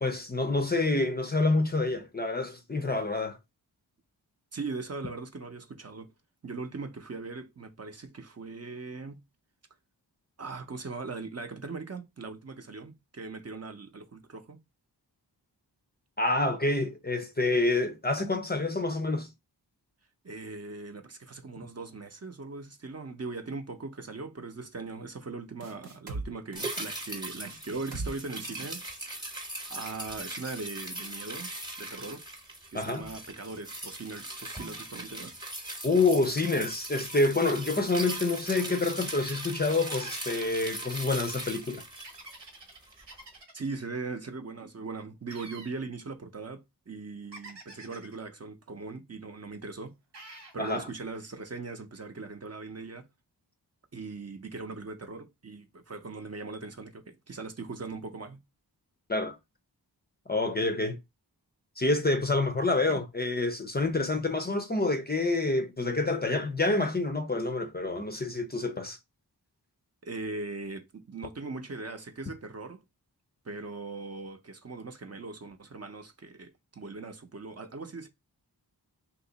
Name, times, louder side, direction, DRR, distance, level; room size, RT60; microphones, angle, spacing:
voice 1, 0.0-3.4 16.2-19.3 32.7-33.1 35.8-41.8 50.6-50.8 59.1-59.4 60.3-61.0 61.8-69.0, left 2 dB, 25° left, 0.5 m, -27 dB
voice 2, 4.5-6.1 6.4-9.2 10.4-14.6 20.2-29.4 29.7-31.5 31.8-32.2 32.7-35.3 43.5-49.9 50.5-53.1 53.9-58.4 70.0-72.8 73.4-78.1, right 3 dB, 40° right, 0.6 m, -40 dB
sound 1, 25.6-26.3 26.5-26.9 27.4-28.1 28.4-28.7, right 3 dB, 70° right, 0.9 m, -38 dB
sound 2, 26.6-43.1 43.4-43.5, right 1 dB, 10° right, 0.9 m, -40 dB
sound 3, 39.9-40.6 42.0-43.8 45.3-45.8 47.3-48.2 50.1-50.6, right 2 dB, 85° right, 1.2 m, -48 dB
2.8 x 2.5 x 3.8 m
wide cardioid pair, 55°, 41 cm